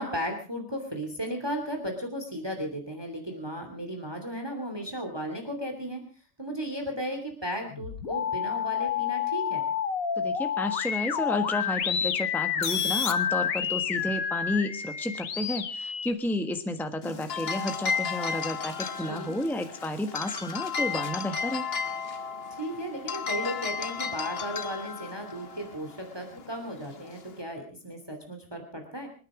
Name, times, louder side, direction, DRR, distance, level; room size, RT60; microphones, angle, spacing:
voice 1, 0.0-6.0 6.4-9.7 19.0-19.4 22.6-29.1, equal, 20° right, 4 dB, 2.9 m, -35 dB
sound 1, 7.7-16.1, left 8 dB, 85° left, 1.6 m, -29 dB
voice 2, 10.2-21.7, left 1 dB, ahead, 7 dB, 1.3 m, -31 dB
sound 2, 17.0-27.4, left 6 dB, 50° left, 1.4 m, -34 dB
27.0 x 9.7 x 5.0 m, 0.38 s
omnidirectional pair, 1.4 m